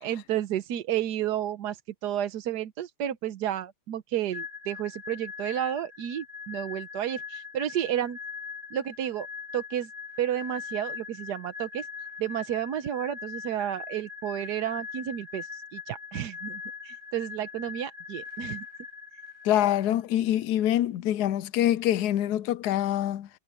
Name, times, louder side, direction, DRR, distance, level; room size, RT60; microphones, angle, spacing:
voice 1, 0.0-8.2 8.7-9.3 9.5-9.9 10.2-11.9 12.2-18.6, right 11 dB, 85° right, 1.4 m, -31 dB
sound 1, 4.3-19.9, left 6 dB, 15° right, 2.5 m, -41 dB
voice 2, 19.4-23.3, left 12 dB, 80° left, 1.1 m, -25 dB
omnidirectional pair, 1.7 m